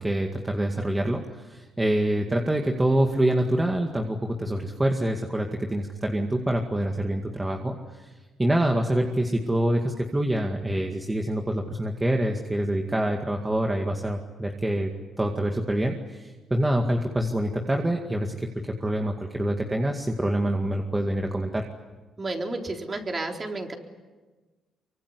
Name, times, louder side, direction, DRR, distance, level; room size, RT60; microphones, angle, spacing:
voice 1, 0.0-14.9 15.2-21.6, right 1 dB, 15° right, 2 dB, 2.2 m, -26 dB
voice 2, 22.2-23.7, right 2 dB, 30° right, 2 dB, 4.0 m, -31 dB
24.5 x 24.5 x 9.8 m, 1.3 s
cardioid pair, 90°, 0 cm